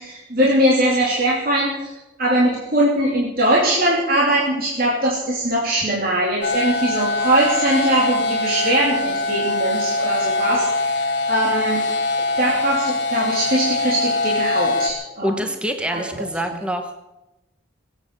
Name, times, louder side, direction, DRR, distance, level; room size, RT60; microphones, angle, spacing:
voice 1, 0.0-1.9 2.2-11.8 12.2-15.4 15.9-16.3, right 1 dB, 45° right, -4 dB, 3.0 m, -21 dB
sound 1, 6.4-14.9, left 2 dB, 55° left, 3.0 m, -23 dB
voice 2, 15.2-16.9, equal, 5° right, 6 dB, 1.2 m, -25 dB
21.0 x 8.9 x 7.6 m, 0.98 s
head